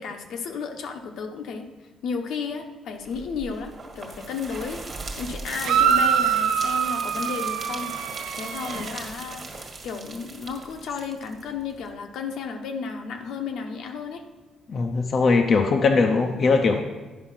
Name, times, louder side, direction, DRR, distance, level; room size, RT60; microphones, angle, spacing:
voice 1, 0.0-1.7 2.0-7.9 8.4-14.2, left 5 dB, 70° left, 4 dB, 1.0 m, -33 dB
Pushing some gravel off a small hill, 3.0-11.9, right 3 dB, 30° right, 1.5 m, -39 dB
sound 1, 5.6-8.9, right 8 dB, 85° right, 0.6 m, -24 dB
voice 2, 14.7-16.8, left 4 dB, 35° left, 4 dB, 0.6 m, -20 dB
10.5 x 5.6 x 5.6 m, 1.2 s
cardioid pair, 170°, 0 cm